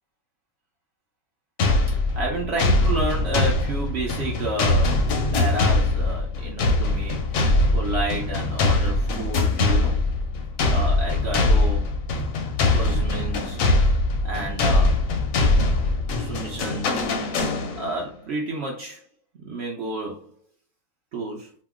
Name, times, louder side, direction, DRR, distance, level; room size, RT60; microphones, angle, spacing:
sound 1, 1.6-18.0, left 2 dB, 70° left, 0.8 m, -22 dB
voice 1, 2.1-10.1 10.7-11.9 12.6-13.6 14.2-15.1 16.2-17.1 17.8-19.0 19.4-20.3 21.1-21.5, right 2 dB, 60° right, 0.7 m, -31 dB
2.8 x 2.0 x 3.5 m
omnidirectional pair, 1.8 m